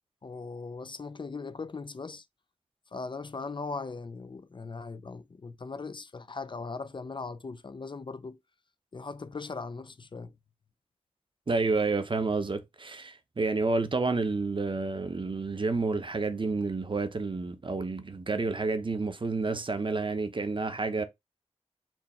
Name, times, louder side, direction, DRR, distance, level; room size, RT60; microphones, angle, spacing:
voice 1, 0.2-2.2 2.9-8.4 8.9-10.3, left 4 dB, 45° left, 0.4 m, -39 dB
voice 2, 11.5-21.0, right 3 dB, 45° right, 0.8 m, -29 dB
4.5 x 2.8 x 4.2 m
wide cardioid pair, 65°, 12 cm